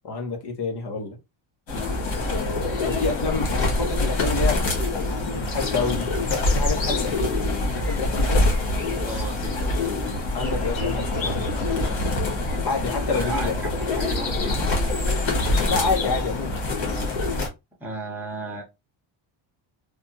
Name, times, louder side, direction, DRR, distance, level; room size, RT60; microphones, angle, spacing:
voice 1, 0.0-1.2 2.3-4.6 5.1-7.3 7.7-8.5 10.3-12.0 12.6-13.6 15.7-16.6, left 4 dB, 55° left, 1.0 m, -28 dB
sound 1, 1.7-17.5, left 2 dB, 70° left, 1.7 m, -25 dB
voice 2, 9.0-9.7 13.1-15.6 17.8-18.6, right 2 dB, 5° right, 0.8 m, -35 dB
3.4 x 2.3 x 2.7 m
cardioid pair, 155°, 48 cm